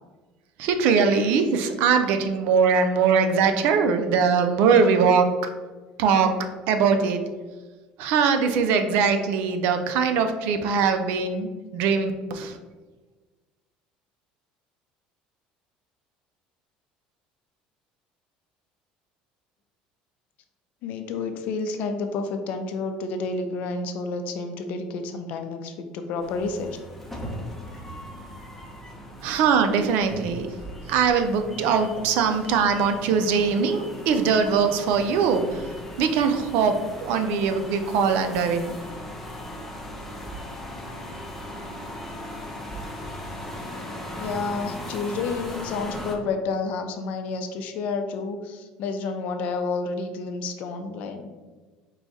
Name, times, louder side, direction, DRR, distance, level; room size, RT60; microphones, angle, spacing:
voice 1, 0.6-5.3 6.0-6.3 6.7-7.3 8.0-12.6 29.2-30.5 30.9-38.7, right 5 dB, 75° right, 7 dB, 0.5 m, -22 dB
voice 2, 20.8-26.8 44.2-51.3, left 4 dB, 65° left, 6 dB, 0.5 m, -30 dB
sound 1, 26.2-46.2, left 1 dB, 5° left, 0.7 m, -38 dB
4.6 x 2.4 x 4.0 m, 1.3 s
cardioid pair, 125°, 3 cm